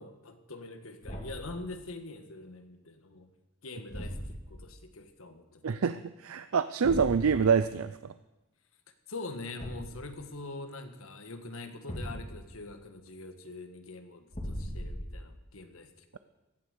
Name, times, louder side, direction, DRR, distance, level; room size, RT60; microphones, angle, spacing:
voice 1, 0.0-3.3 3.6-5.8 9.1-16.2, left 2 dB, 80° left, 7 dB, 1.6 m, -44 dB
Thump thud, 1.0-1.6 3.9-4.6 6.8-7.3 9.6-10.1 11.9-12.5 14.3-15.3, equal, 35° left, 2.3 m, -38 dB
voice 2, 5.6-8.0, right 6 dB, 80° right, 12 dB, 0.5 m, -26 dB
16.0 x 11.5 x 6.7 m, 1.0 s
head